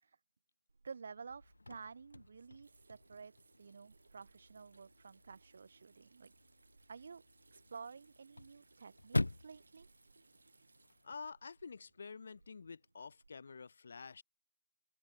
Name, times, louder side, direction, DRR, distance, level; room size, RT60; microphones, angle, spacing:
Water tap faucet / Sink (filling or washing), 0.7-13.3, right 3 dB, 55° right, 5.7 m, -68 dB
voice 1, 0.8-6.3 6.9-7.2 7.5-9.9, right 5 dB, 40° right, 3.1 m, -52 dB
Chirp tweet / Car / Slam, 1.3-11.3, left 2 dB, 85° left, 2.0 m, -45 dB
voice 2, 11.0-14.2, left 5 dB, 40° left, 0.6 m, -49 dB
open air
figure-of-eight pair, 170°, 0 cm